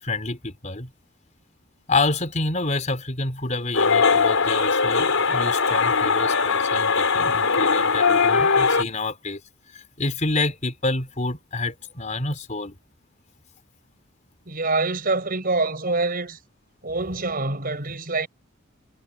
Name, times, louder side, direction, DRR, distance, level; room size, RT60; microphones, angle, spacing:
voice 1, 0.0-0.9 1.9-9.4 9.7-12.8, left 3 dB, 35° left, 4.2 m, -28 dB
sound 1, 3.7-8.8, left 5 dB, 70° left, 4.5 m, -20 dB
voice 2, 14.5-16.4 16.8-18.3, right 3 dB, 40° right, 5.9 m, -25 dB
head